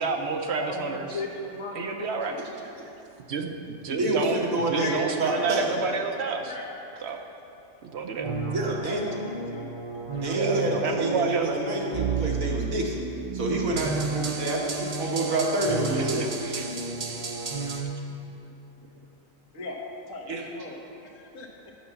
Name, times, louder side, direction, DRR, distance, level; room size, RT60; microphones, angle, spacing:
voice 1, 0.0-1.1 1.8-2.4 3.3-4.4 4.7-6.5 7.0-7.2 7.8-8.3 10.3-11.6 15.8-16.8 17.7-17.8, right 5 dB, 60° right, 4 dB, 0.8 m, -30 dB
voice 2, 0.6-2.9 4.7-6.7 8.4-9.7 13.7-13.9 14.4-14.7 16.8-17.2 19.5-19.8 20.1-21.7, left 2 dB, 70° left, -1 dB, 1.6 m, -39 dB
voice 3, 3.9-4.9 5.2-5.7 8.5-9.1 10.2-13.1 13.3-14.6 15.0-16.3 20.3-20.4, right 1 dB, 90° right, -1 dB, 1.7 m, -28 dB
sound 1, 8.2-17.8, right 4 dB, 40° right, 0.5 m, -32 dB
9.2 x 5.8 x 6.9 m, 2.8 s
omnidirectional pair, 1.4 m